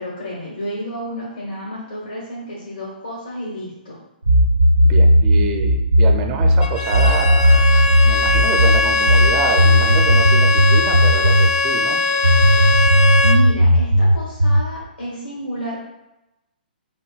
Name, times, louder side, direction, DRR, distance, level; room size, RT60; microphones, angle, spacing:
voice 1, 0.0-4.0 13.2-15.8, equal, 75° left, -5 dB, 1.2 m, -30 dB
sound 1, 4.3-11.6 12.2-14.7, equal, 90° right, 0.3 m, -14 dB
voice 2, 4.8-12.0, right 4 dB, 30° right, 4 dB, 0.5 m, -27 dB
Bowed string instrument, 6.6-13.5, left 3 dB, 50° left, 0.4 m, -20 dB
4.3 x 3.4 x 2.3 m, 0.94 s
figure-of-eight pair, 125°, 5 cm